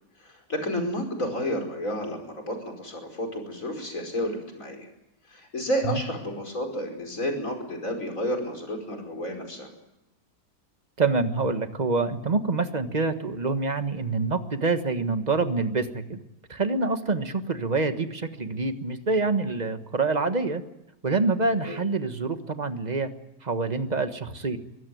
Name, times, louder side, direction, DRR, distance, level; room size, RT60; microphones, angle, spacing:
voice 1, 0.2-4.9 5.3-9.7 21.6-21.8, equal, 50° left, 3 dB, 5.5 m, -31 dB
voice 2, 11.0-16.2 16.5-20.6 21.0-23.1 23.4-24.6, right 3 dB, 25° right, 9 dB, 1.4 m, -26 dB
23.5 x 16.5 x 9.4 m, 0.91 s
omnidirectional pair, 1.8 m